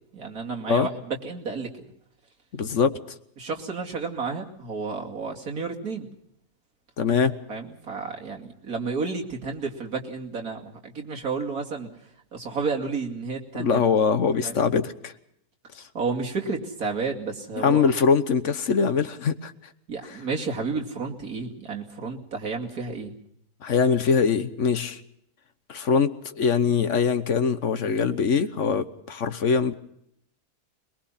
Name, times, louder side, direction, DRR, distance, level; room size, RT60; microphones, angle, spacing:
voice 1, 0.1-1.7 3.4-6.1 7.5-11.9 12.3-13.8 14.4-14.6 15.9-17.9 19.9-23.1, right 4 dB, 65° right, 1 dB, 2.9 m, -31 dB
voice 2, 2.5-3.0 7.0-7.3 13.6-15.1 15.7-15.8 17.6-19.5 20.0-20.2 23.6-25.0 25.7-29.7, left 6 dB, 50° left, 11 dB, 1.3 m, -23 dB
22.0 x 21.5 x 5.7 m, 0.73 s
omnidirectional pair, 1.7 m